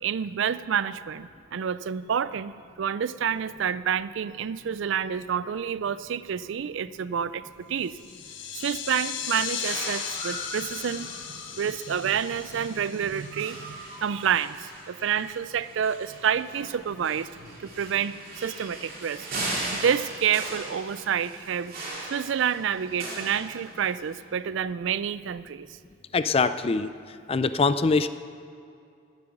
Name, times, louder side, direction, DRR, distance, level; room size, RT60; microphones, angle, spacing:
voice 1, 0.0-2.5 2.8-7.4 7.7-8.0 8.5-11.2 11.6-17.3 17.6-19.3 19.7-21.7 22.1-25.7, right 8 dB, 65° right, 16 dB, 0.4 m, -28 dB
sound 1, 7.9-13.9, left 8 dB, 60° left, 0.8 m, -36 dB
sound 2, 9.6-24.1, right 2 dB, 45° right, 2.9 m, -39 dB
voice 2, 26.1-26.9 27.3-28.1, left 4 dB, 30° left, 13 dB, 0.4 m, -23 dB
17.0 x 7.7 x 6.0 m, 2.4 s
head